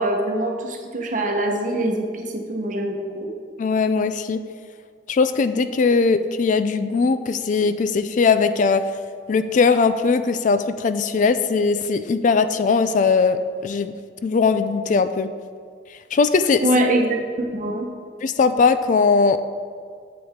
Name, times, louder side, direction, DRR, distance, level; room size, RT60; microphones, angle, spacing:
voice 1, 0.0-3.3 16.6-17.9, right 1 dB, 45° right, 2 dB, 1.1 m, -23 dB
voice 2, 3.6-4.4 5.1-8.8 9.3-13.9 14.2-15.3 16.1-16.7 18.2-19.4, left 4 dB, 45° left, 11 dB, 0.3 m, -19 dB
8.5 x 7.8 x 3.7 m, 2.1 s
head